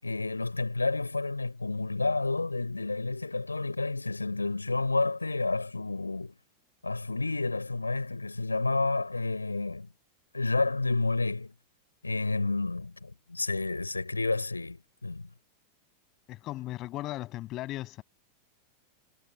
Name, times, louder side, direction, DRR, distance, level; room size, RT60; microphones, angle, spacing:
voice 1, 0.0-6.3 6.8-9.9 10.3-11.5 12.0-15.3, left 3 dB, 80° left, 5.4 m, -30 dB
voice 2, 16.3-18.0, left 16 dB, 35° left, 7.9 m, -37 dB
figure-of-eight pair, 90°, 0 cm